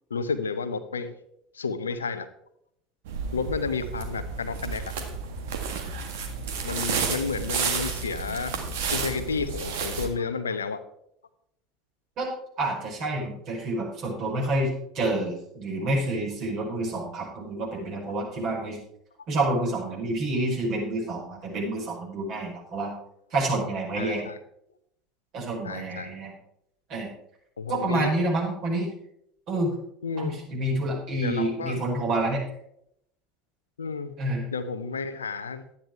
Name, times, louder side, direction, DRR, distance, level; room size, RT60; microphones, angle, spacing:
voice 1, 0.1-1.1 1.5-2.3 3.3-4.9 6.6-8.5 8.9-10.8 24.0-24.4 25.6-26.1 27.6-28.1 30.0-30.4 31.2-31.8 33.8-34.1 34.5-35.6, left 5 dB, 80° left, 10 dB, 0.8 m, -31 dB
sound 1, 3.1-10.1, right 5 dB, 65° right, 1.7 m, -31 dB
voice 2, 12.6-18.8 19.3-22.9 23.3-24.2 25.3-26.3 26.9-27.1 27.7-28.9 29.5-29.8 30.2-32.4 34.2-34.4, right 2 dB, 50° right, -2 dB, 5.1 m, -28 dB
12.0 x 9.8 x 4.5 m, 0.73 s
figure-of-eight pair, 70°, 0 cm